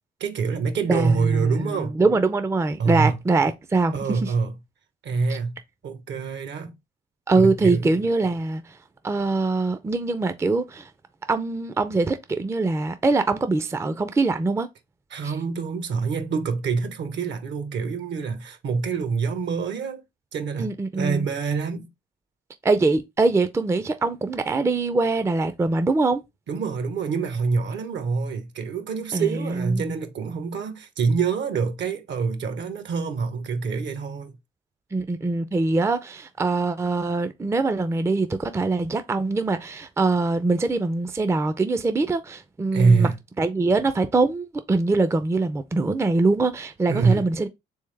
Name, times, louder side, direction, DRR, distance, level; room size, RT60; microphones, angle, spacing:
voice 1, 0.2-2.0 2.8-3.2 3.9-4.5 5.0-6.8 7.4-7.9 15.1-20.0 20.3-21.9 26.5-34.3 42.7-43.2 46.9-47.3, right 5 dB, 65° right, 1.0 m, -25 dB
voice 2, 0.9-4.3 7.3-8.6 9.0-10.9 11.3-14.7 15.2-15.3 20.6-21.2 22.6-26.2 29.1-30.0 34.9-43.1 43.4-47.5, right 3 dB, 15° right, 0.4 m, -23 dB
3.4 x 3.4 x 3.2 m
cardioid pair, 90°, 20 cm